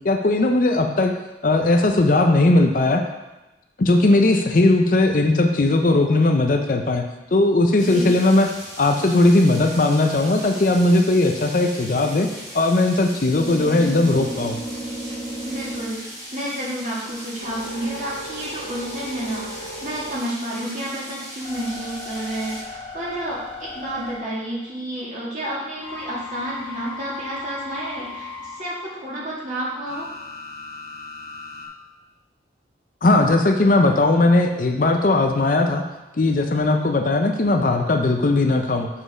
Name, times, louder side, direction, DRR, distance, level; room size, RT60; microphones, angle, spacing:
voice 1, 0.0-1.1 1.4-3.0 3.8-7.0 7.3-8.5 8.8-12.3 12.5-14.6 33.0-35.8 36.2-38.9, left 2 dB, 50° left, 4 dB, 0.5 m, -18 dB
sound 1, 7.8-22.6, equal, 20° right, 2.2 m, -39 dB
sound 2, 13.3-16.5 17.0-20.5 21.0-24.7 25.8-28.6 29.8-31.7, left 1 dB, 35° left, 1.3 m, -36 dB
voice 2, 15.4-16.0 16.3-30.1, right 1 dB, 40° right, -7 dB, 2.3 m, -30 dB
7.1 x 4.4 x 5.0 m, 1.0 s
head